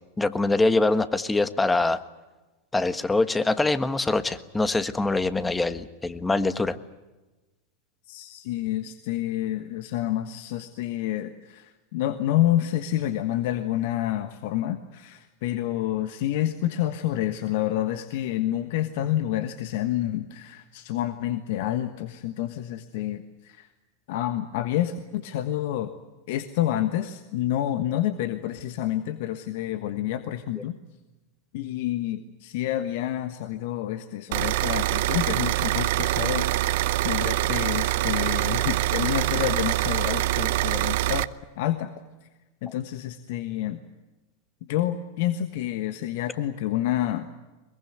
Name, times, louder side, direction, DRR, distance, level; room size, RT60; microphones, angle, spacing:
voice 1, 0.2-2.0 2.7-6.8 30.6-30.7, left 2 dB, 10° left, 12 dB, 1.4 m, -24 dB
voice 2, 8.1-23.7 24.1-25.9 26.3-30.7 31.5-41.3 41.6-41.9 42.6-43.8 44.7-47.3, left 13 dB, 60° left, 9 dB, 1.4 m, -28 dB
sound 1, 34.3-41.2, right 15 dB, 60° right, 0.7 m, -24 dB
22.0 x 22.0 x 9.4 m, 1.1 s
hypercardioid pair, 95°, 0 cm